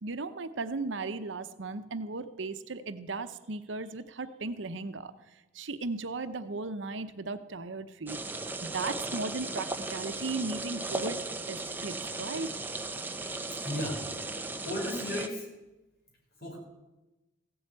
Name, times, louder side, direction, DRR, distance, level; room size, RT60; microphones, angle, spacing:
voice 1, 0.0-5.1 5.5-8.2 8.6-11.2 11.5-12.5, right 3 dB, 85° right, 10 dB, 0.8 m, -36 dB
sound 1, 8.1-15.3, right 2 dB, 10° right, 0.8 m, -36 dB
voice 2, 13.5-14.2 14.6-15.5 16.4-16.6, left 1 dB, 55° left, -1 dB, 5.1 m, -35 dB
15.5 x 7.9 x 8.8 m, 1.0 s
head